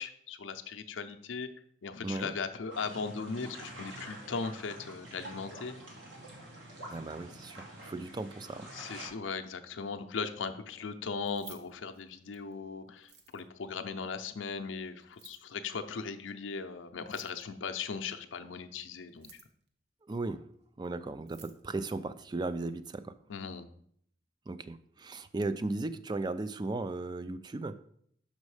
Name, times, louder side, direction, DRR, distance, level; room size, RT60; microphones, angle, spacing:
voice 1, 0.0-1.5 1.8-5.8 8.7-19.4 23.3-23.7, left 5 dB, 80° left, 7 dB, 0.6 m, -38 dB
voice 2, 2.0-2.3 6.9-8.7 20.1-20.4 20.8-23.1 24.5-27.8, right 2 dB, 20° right, 12 dB, 0.3 m, -36 dB
sound 1, 2.7-9.1, right 1 dB, 75° right, 2.0 m, -47 dB
Keys jangling, 11.2-12.5 13.0-13.6 15.0-15.5 17.0-17.6 19.0-19.7 20.8-20.9 21.2-21.6, right 5 dB, 55° right, 0.9 m, -54 dB
6.3 x 5.2 x 4.8 m, 0.67 s
head